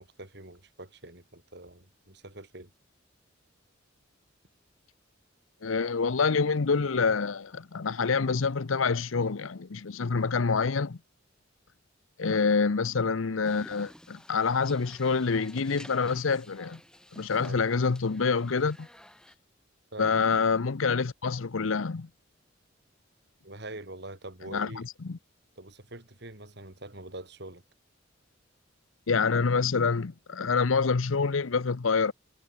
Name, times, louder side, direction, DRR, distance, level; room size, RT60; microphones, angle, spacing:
voice 1, 0.0-2.7 12.4-12.6 17.5-17.6 19.9-20.1 23.4-24.9 25.6-27.6, right 2 dB, 55° right, 5.0 m, -44 dB
voice 2, 5.6-11.0 12.2-16.8 17.1-18.9 20.0-22.1 24.5-25.2 29.1-32.1, left 5 dB, 85° left, 0.7 m, -27 dB
sound 1, 13.4-19.4, equal, 5° left, 7.5 m, -52 dB
head